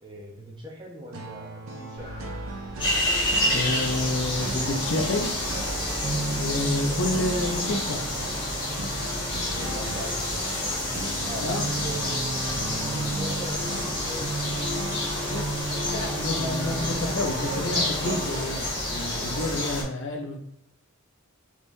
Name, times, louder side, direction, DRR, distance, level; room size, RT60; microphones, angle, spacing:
voice 1, 0.0-2.1 6.9-7.0 9.5-10.6 11.2-14.3, right 1 dB, 20° right, -1 dB, 0.7 m, -41 dB
sound 1, 1.1-18.6, right 2 dB, 65° right, 0.6 m, -35 dB
sound 2, 2.0-17.9, equal, 85° right, 1.4 m, -43 dB
sound 3, 2.8-19.8, left 1 dB, 20° left, 1.4 m, -29 dB
voice 2, 3.5-5.4 6.4-8.1 11.4-11.7 15.3-15.4 15.9-20.4, left 2 dB, 60° left, 2 dB, 0.6 m, -29 dB
3.6 x 3.1 x 2.6 m, 0.75 s
head